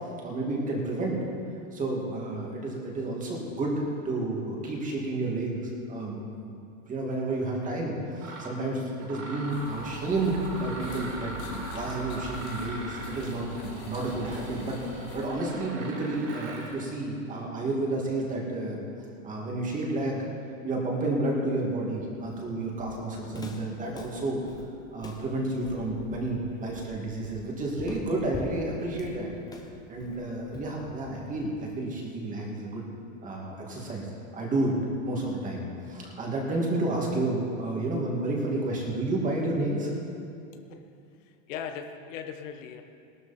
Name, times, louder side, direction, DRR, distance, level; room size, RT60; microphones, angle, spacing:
voice 1, 0.2-1.2 1.7-6.6 6.9-11.4 11.7-18.8 19.2-20.3 20.6-24.4 24.9-29.3 29.9-32.8 33.2-34.8 35.0-39.9, right 2 dB, 20° right, -2 dB, 2.4 m, -31 dB
Mechanisms, 7.5-7.7 8.2-8.6 9.0-16.8, right 2 dB, 45° right, 4.1 m, -40 dB
sound 1, 9.5-15.4, left 2 dB, 80° left, 2.9 m, -43 dB
Walk footsteps, 22.2-31.5, left 2 dB, 10° left, 0.8 m, -45 dB
voice 2, 41.5-42.8, left 7 dB, 65° left, 6 dB, 1.3 m, -38 dB
18.0 x 12.5 x 4.3 m, 2.6 s
supercardioid pair, 160°, 41 cm